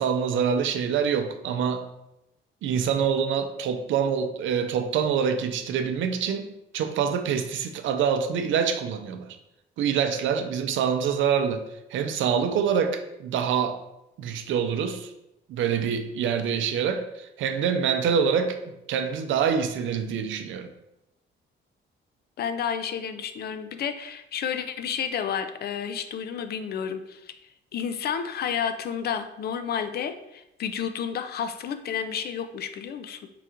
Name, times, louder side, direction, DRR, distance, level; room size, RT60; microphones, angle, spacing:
voice 1, 0.0-1.9 2.6-9.3 9.8-11.6 11.9-13.8 14.2-15.1 15.5-18.6 18.9-20.7, right 7 dB, 75° right, 7 dB, 0.5 m, -25 dB
voice 2, 22.4-27.3 27.7-33.3, left 7 dB, 55° left, 10 dB, 0.4 m, -31 dB
3.8 x 2.4 x 4.4 m, 0.88 s
cardioid pair, 90°, 20 cm